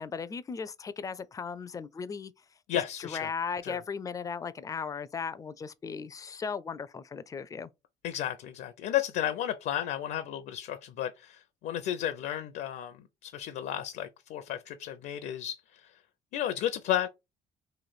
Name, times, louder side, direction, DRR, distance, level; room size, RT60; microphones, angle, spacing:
voice 1, 0.0-2.3 2.7-7.7, left 5 dB, 20° left, 0.4 m, -37 dB
voice 2, 2.7-3.3 3.6-3.8 8.0-15.9 16.3-17.1, left 11 dB, 70° left, 0.5 m, -33 dB
3.2 x 2.6 x 4.0 m
cardioid pair, 110°, 17 cm